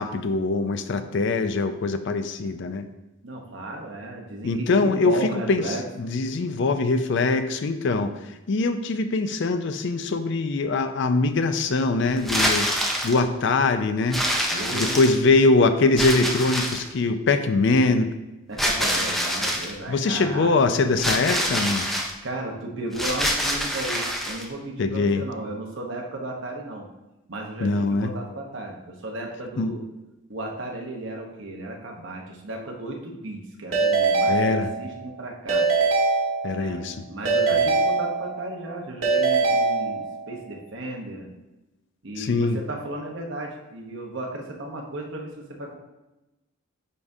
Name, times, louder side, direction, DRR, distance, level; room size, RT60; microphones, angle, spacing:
voice 1, 0.0-2.9 4.4-5.6 6.0-12.7 13.0-14.2 14.7-18.1 19.9-21.9 24.8-25.2 27.6-28.1 29.6-29.8 34.3-34.7 36.4-37.0 37.5-37.6 42.2-42.6, left 3 dB, 55° left, 9 dB, 0.4 m, -22 dB
voice 2, 3.2-5.8 14.5-15.2 18.5-20.5 22.2-26.9 27.3-29.8 30.3-35.7 36.5-36.8 37.1-41.3 42.0-45.8, right 1 dB, 60° right, 1 dB, 1.0 m, -34 dB
sound 1, 12.2-13.2 14.1-15.4 16.0-16.9 18.6-19.7 21.0-22.1 22.9-24.5, equal, ahead, 0.5 m, -25 dB
Keyboard (musical) / Ringtone, 33.7-35.1 35.5-36.8 37.2-38.6 39.0-40.4, right 4 dB, 90° right, 1.6 m, -23 dB
9.7 x 3.6 x 2.7 m, 1.0 s
head